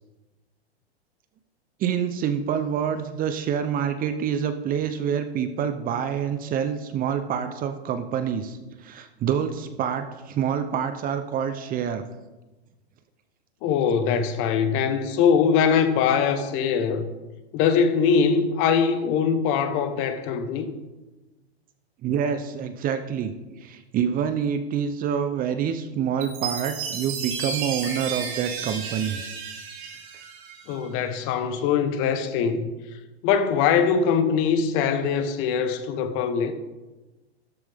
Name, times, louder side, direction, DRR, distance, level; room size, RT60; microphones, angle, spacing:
voice 1, 1.8-12.0 22.0-23.3 23.6-29.2, right 8 dB, 25° right, 0.8 m, -27 dB
voice 2, 13.6-17.1 17.5-20.7 30.7-32.7 33.2-36.5, left 6 dB, 40° left, 1.4 m, -22 dB
Chime, 26.2-30.8, right 6 dB, 50° right, 4.0 m, -33 dB
13.0 x 11.5 x 3.6 m
hypercardioid pair, 120°, 32 cm